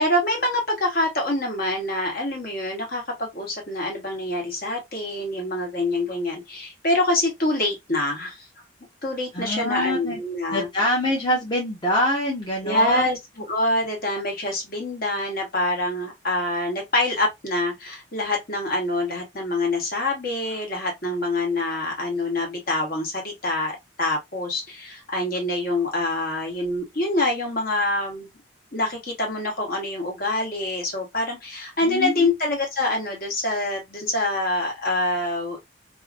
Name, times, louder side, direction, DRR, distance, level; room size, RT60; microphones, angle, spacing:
voice 1, 0.0-8.5 9.0-10.7 12.6-13.2 13.5-28.3 28.7-35.8, left 1 dB, 50° left, 1.1 m, -25 dB
voice 2, 9.3-10.2 10.5-13.1 31.9-32.2, left 1 dB, 25° left, 0.7 m, -24 dB
2.7 x 2.5 x 2.3 m
head